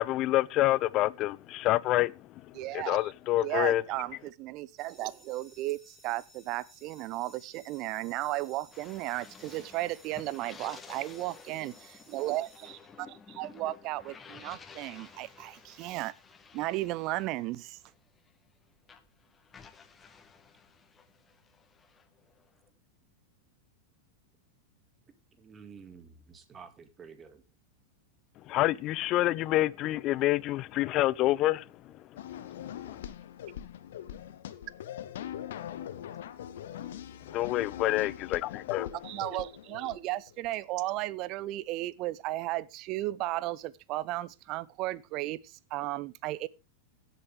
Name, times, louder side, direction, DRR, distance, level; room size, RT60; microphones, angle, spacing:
voice 1, 0.0-2.1 2.7-3.8 28.5-31.6 32.5-33.0 37.3-38.9, left 16 dB, 35° left, 0.5 m, -27 dB
voice 2, 2.5-3.1 3.4-16.1 16.5-17.8 39.0-46.5, right 17 dB, 40° right, 0.7 m, -35 dB
sound 1, 4.8-13.4, equal, ahead, 4.0 m, -59 dB
sound 2, 8.7-18.6 18.8-22.7, left 6 dB, 20° left, 1.4 m, -53 dB
voice 3, 25.4-27.4 35.5-35.7 36.9-37.0, right 6 dB, 20° right, 1.9 m, -51 dB
sound 3, 32.2-40.5, left 10 dB, 60° left, 1.1 m, -42 dB
16.5 x 8.2 x 3.5 m
figure-of-eight pair, 90°, 0 cm